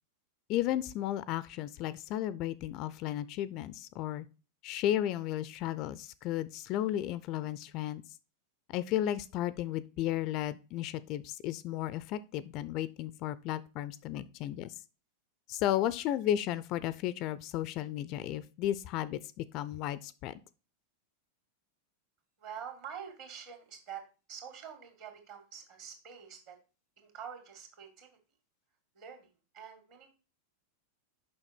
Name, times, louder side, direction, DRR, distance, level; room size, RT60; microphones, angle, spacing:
voice 1, 0.5-4.3 4.6-8.0 8.7-14.7 15.5-20.3, left 12 dB, 40° left, 0.4 m, -34 dB
voice 2, 22.4-24.0 24.3-26.6 27.0-28.2 28.9-29.3 29.5-30.1, right 8 dB, 45° right, 2.3 m, -46 dB
6.5 x 5.7 x 4.4 m
figure-of-eight pair, 90°, 0 cm